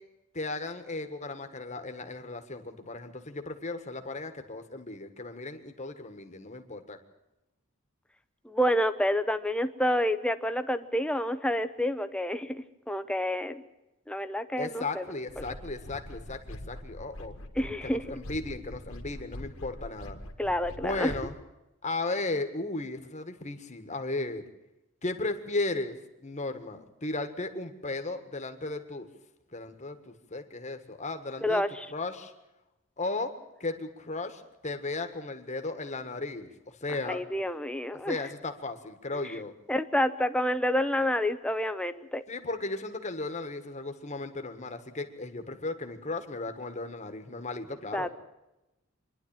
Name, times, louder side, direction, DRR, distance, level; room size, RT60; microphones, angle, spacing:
voice 1, 0.3-7.0 14.6-17.3 17.8-20.2 20.8-21.3 21.8-24.4 25.0-25.9 26.2-29.1 29.5-31.6 31.9-32.3 33.0-33.3 33.6-37.5 38.0-39.5 42.3-48.1, left 2 dB, 30° left, 7 dB, 1.6 m, -35 dB
voice 2, 8.4-13.6 14.1-15.0 17.6-18.2 20.4-21.1 31.4-31.9 37.1-38.2 39.7-42.2 47.9-48.1, equal, 5° left, 10 dB, 0.8 m, -28 dB
sound 1, 15.3-21.3, left 1 dB, 65° left, 1.9 m, -43 dB
26.0 x 11.0 x 8.9 m, 0.98 s
head